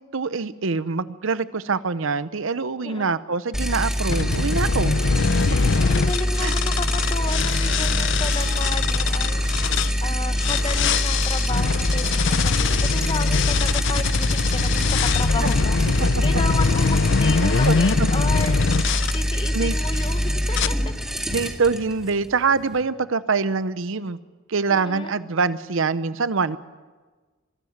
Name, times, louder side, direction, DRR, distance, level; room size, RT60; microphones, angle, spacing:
voice 1, 0.1-4.9 6.4-6.5 15.4-15.5 17.4-18.1 19.5-19.8 21.3-24.2 24.5-26.6, right 4 dB, 70° right, 15 dB, 0.7 m, -24 dB
voice 2, 2.8-3.2 5.8-9.4 10.0-15.8 16.2-18.6 19.1-20.7 24.7-25.1, left 3 dB, 25° left, 9 dB, 1.2 m, -33 dB
sound 1, 3.5-22.8, equal, 5° right, 2.3 m, -24 dB
sound 2, 4.1-9.9 10.4-19.2 19.8-20.1 20.5-20.7, left 5 dB, 60° left, 0.5 m, -23 dB
23.5 x 13.0 x 9.3 m, 1.3 s
head